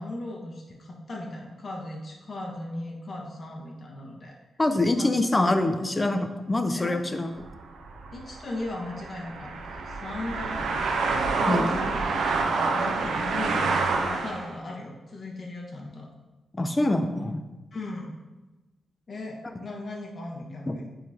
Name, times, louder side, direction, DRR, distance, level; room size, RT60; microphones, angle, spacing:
voice 1, 0.0-4.3 4.9-5.2 6.7-7.0 8.1-10.9 11.3-16.1 17.7-18.1 19.1-20.9, left 2 dB, 55° left, -1 dB, 1.4 m, -37 dB
voice 2, 4.6-7.3 11.5-11.7 16.5-17.4 20.7-20.8, left 2 dB, 25° left, 8 dB, 0.6 m, -25 dB
sound 1, 7.4-14.5, right 4 dB, 85° right, 0.7 m, -28 dB
9.6 x 4.0 x 2.9 m, 1.1 s
cardioid pair, 65°, 0 cm